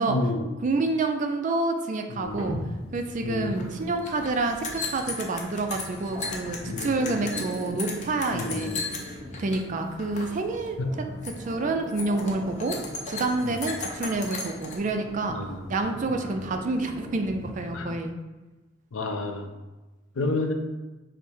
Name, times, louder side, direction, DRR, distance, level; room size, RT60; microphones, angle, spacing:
voice 1, 0.1-0.5 2.1-2.6 3.2-3.8 6.7-7.2 8.3-8.8 10.8-10.9 13.4-13.6 15.3-15.7 16.1-16.2 17.7-18.0 18.9-19.5 20.2-20.5, left 2 dB, 75° left, 5 dB, 0.5 m, -30 dB
voice 2, 0.6-2.5 2.9-8.7 9.4-10.8 11.4-12.8 13.1-15.4 15.7-18.1, right 3 dB, 40° right, 5 dB, 0.4 m, -28 dB
sound 1, 2.2-17.8, equal, 5° right, 1.3 m, -40 dB
sound 2, 3.6-3.7 3.9-9.6 9.9-10.4 10.7-10.9 11.2-11.5 11.9-14.8, left 3 dB, 35° left, 0.6 m, -36 dB
4.9 x 2.1 x 4.5 m, 1.1 s
head